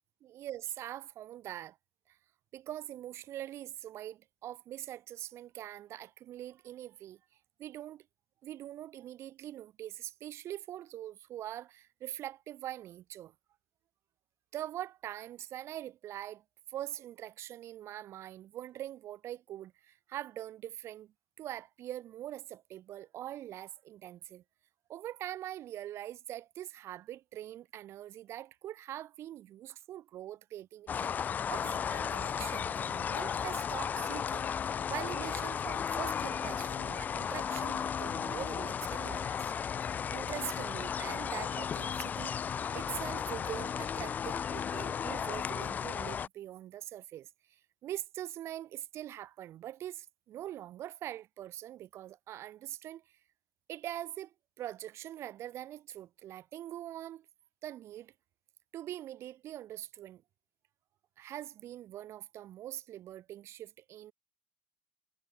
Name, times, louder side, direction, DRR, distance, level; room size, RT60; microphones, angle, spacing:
voice 1, 0.2-1.8 2.1-2.2 2.5-7.2 7.6-8.1 8.4-13.3 14.5-16.4 16.7-24.4 24.9-39.5 40.1-53.0 53.7-57.3 57.6-58.1 58.7-60.2 61.2-64.1, right 12 dB, 40° right, 2.3 m, -43 dB
sound 1, 30.9-46.3, left 7 dB, 25° left, 0.4 m, -35 dB
figure-of-eight pair, 70°, 7 cm